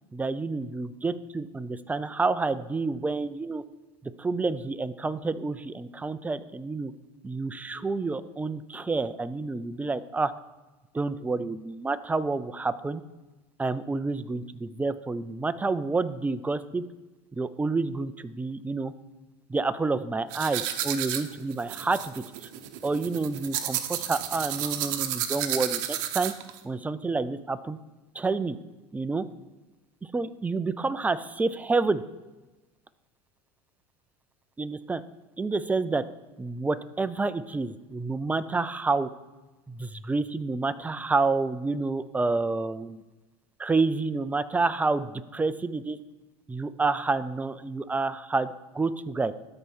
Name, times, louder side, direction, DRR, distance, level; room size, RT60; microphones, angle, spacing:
voice 1, 0.1-3.6 4.0-6.9 7.2-10.3 10.9-13.0 13.6-16.8 17.3-18.9 19.5-22.5 22.8-26.3 26.6-27.8 28.2-28.6 28.9-29.3 30.1-32.0 34.6-35.0 35.4-36.0 36.4-39.1 39.7-43.0 43.6-46.0 46.5-49.3, right 3 dB, 10° right, 13 dB, 0.4 m, -29 dB
sound 1, 20.3-26.6, right 11 dB, 65° right, 0.8 m, -32 dB
12.5 x 4.4 x 5.5 m, 1.1 s
supercardioid pair, 110°, 15 cm